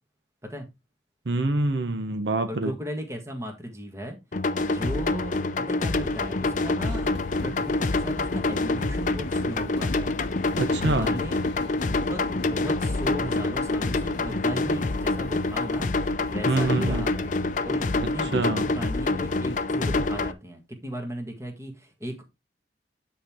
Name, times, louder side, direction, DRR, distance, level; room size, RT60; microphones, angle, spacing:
voice 1, 1.3-2.7 10.6-11.1 16.5-17.0 18.3-18.6, right 2 dB, 70° right, 0.8 m, -25 dB
voice 2, 2.5-4.2 4.6-11.4 11.9-17.3 17.6-22.2, equal, 15° right, 1.6 m, -36 dB
sound 1, 4.3-20.3, left 2 dB, 45° left, 0.6 m, -26 dB
sound 2, 5.9-19.7, left 2 dB, 70° left, 0.8 m, -40 dB
9.3 x 4.5 x 3.6 m
head